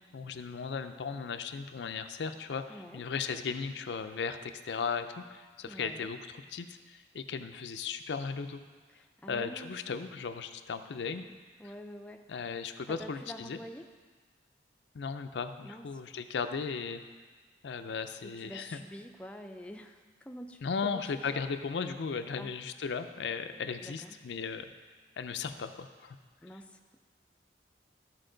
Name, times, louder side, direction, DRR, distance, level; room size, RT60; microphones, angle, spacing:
voice 1, 0.0-8.6 9.3-11.3 12.3-13.6 14.9-17.0 17.6-18.8 20.6-24.7 25.2-26.2, left 5 dB, 90° left, 8 dB, 0.5 m, -36 dB
voice 2, 2.7-3.0 5.7-6.1 8.9-10.0 11.6-12.2 12.9-13.9 15.6-15.9 18.2-21.4 22.4-22.5 23.8-24.2 26.4-27.0, equal, 5° left, 4 dB, 0.3 m, -47 dB
13.5 x 4.5 x 3.8 m, 1.5 s
head